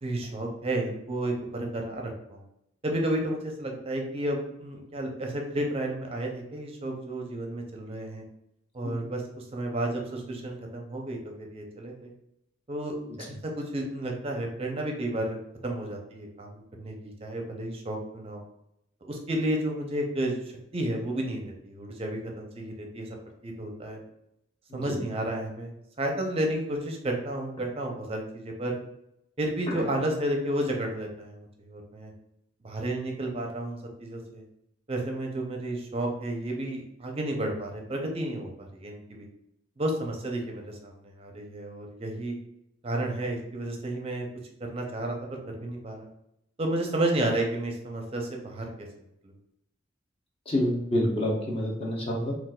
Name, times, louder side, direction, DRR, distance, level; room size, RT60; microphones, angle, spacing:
voice 1, 0.0-2.4 2.8-8.2 8.7-12.1 12.7-13.0 13.3-15.4 15.6-18.4 19.0-20.4 20.7-23.1 23.4-24.0 24.7-25.7 26.0-28.8 29.4-32.1 32.6-34.4 34.9-39.3 39.8-42.4 42.8-44.3 44.6-46.1 46.6-48.9 49.2-49.3, right 1 dB, 30° right, 1 dB, 0.5 m, -32 dB
voice 2, 50.5-52.3, left 1 dB, 30° left, -2 dB, 0.7 m, -27 dB
3.8 x 2.4 x 2.3 m, 0.79 s
head